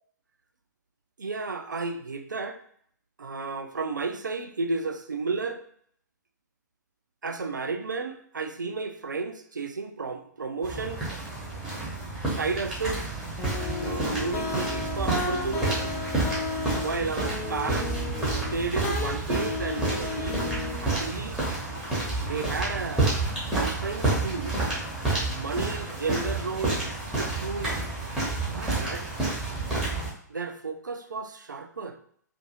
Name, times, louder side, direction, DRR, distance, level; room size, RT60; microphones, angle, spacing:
voice 1, 1.2-2.6 3.2-5.6 7.2-11.0 12.3-13.1 13.8-16.0 16.8-21.4 22.2-23.1 23.5-24.6 25.3-26.8 27.1-27.7 28.5-29.0 30.3-32.0, right 4 dB, 80° right, 7 dB, 0.4 m, -33 dB
sound 1, 10.6-30.1, right 2 dB, 5° right, 0.9 m, -30 dB
sound 2, 13.4-21.0, left 4 dB, 15° left, 0.4 m, -34 dB
2.6 x 2.5 x 2.6 m, 0.62 s
figure-of-eight pair, 115°, 10 cm